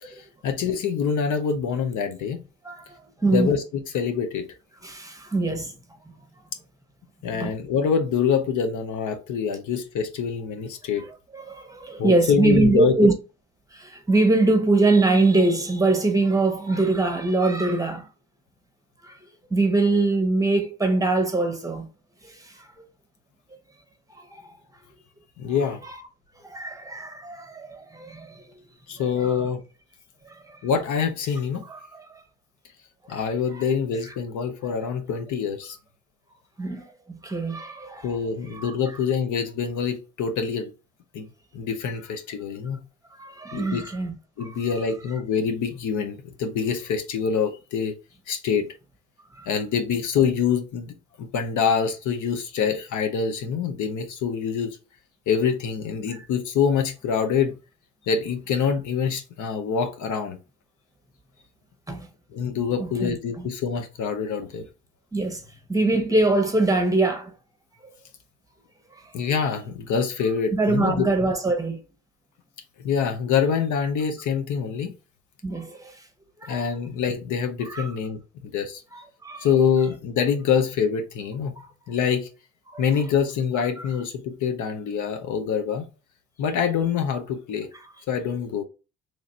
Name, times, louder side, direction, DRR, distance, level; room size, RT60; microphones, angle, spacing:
voice 1, 0.0-2.4 3.3-3.6 3.9-4.4 7.2-11.0 12.0-13.1 25.4-25.8 28.9-29.6 30.6-31.6 33.1-35.8 38.0-40.7 41.1-41.3 41.5-42.9 43.5-43.8 44.4-47.9 48.3-48.7 49.5-54.8 55.3-57.5 58.1-60.4 62.3-64.6 69.1-71.1 72.8-74.9 76.5-78.8 79.4-81.6 81.9-82.3 82.8-85.9 86.4-87.7 88.1-88.6, left 6 dB, 75° left, 0.8 m, -25 dB
voice 2, 3.2-3.5 4.8-5.7 7.3-7.5 11.0-11.1 11.3-13.1 13.7-18.1 19.0-19.2 19.5-21.9 22.2-22.7 24.1-24.5 25.8-25.9 26.4-28.4 29.2-29.5 30.2-30.6 31.7-32.2 33.1-33.3 33.5-33.6 36.6-38.2 38.5-38.7 43.2-44.1 44.4-44.6 49.4-49.5 56.1-56.2 61.9-62.1 62.8-63.5 65.1-65.4 65.7-67.3 70.5-71.8 75.4-76.0 76.4-76.7 77.6-77.9 78.9-79.5 82.7-82.8, right 2 dB, 10° right, 0.9 m, -23 dB
3.2 x 2.5 x 4.2 m
cardioid pair, 90°, 30 cm